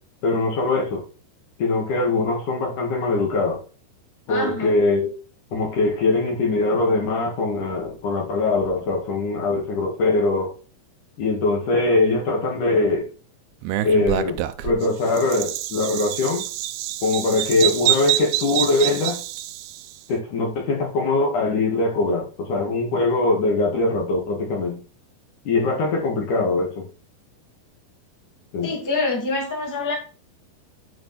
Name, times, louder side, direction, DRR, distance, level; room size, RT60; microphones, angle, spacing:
voice 1, 0.2-1.0 1.6-3.6 4.3-5.1 5.5-10.5 11.2-13.1 13.8-16.4 17.0-19.2 20.1-24.8 25.4-26.9 28.5-28.7, left 3 dB, 55° left, 3.3 m, -22 dB
voice 2, 4.3-4.8 28.6-29.9, left 3 dB, 5° left, 1.8 m, -26 dB
Bird vocalization bird call bird song, 13.6-19.9, right 14 dB, 85° right, 2.5 m, -26 dB
9.7 x 5.1 x 4.4 m
omnidirectional pair, 4.7 m